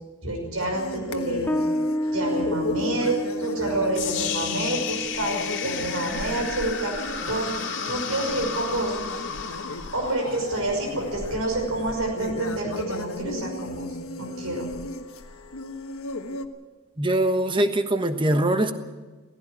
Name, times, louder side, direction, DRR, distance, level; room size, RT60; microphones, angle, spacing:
voice 1, 0.2-1.5 2.1-7.5 7.9-8.9 9.9-13.9 14.2-14.7, right 2 dB, 80° right, 2 dB, 5.6 m, -28 dB
sound 1, 0.6-16.5, left 2 dB, 90° left, 1.4 m, -35 dB
Bass guitar, 1.5-8.6, equal, 10° left, 0.6 m, -32 dB
sound 2, 3.9-12.0, left 7 dB, 60° left, 2.5 m, -33 dB
voice 2, 17.0-18.7, right 1 dB, 25° right, 9 dB, 1.3 m, -22 dB
17.0 x 16.0 x 10.0 m, 1.3 s
head